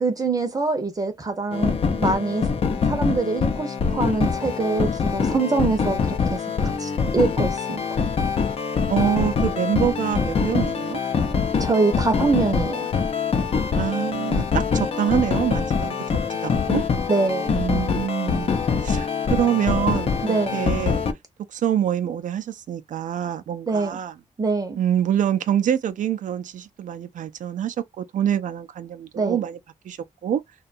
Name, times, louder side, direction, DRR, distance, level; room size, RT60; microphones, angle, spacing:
voice 1, 0.0-2.5 2.8-6.4 6.8-7.8 11.6-12.9 17.1-17.6 20.2-20.6 23.7-24.0 24.4-24.8 29.2-29.4, right 3 dB, 25° right, 0.7 m, -24 dB
sound 1, 1.5-21.1, left 5 dB, 45° left, 0.5 m, -24 dB
voice 2, 8.9-11.0 13.7-16.0 16.3-16.8 17.5-21.1 21.5-24.1 24.8-29.6 29.8-30.4, right 10 dB, 70° right, 0.4 m, -25 dB
2.7 x 2.2 x 2.4 m
wide cardioid pair, 120°, 14 cm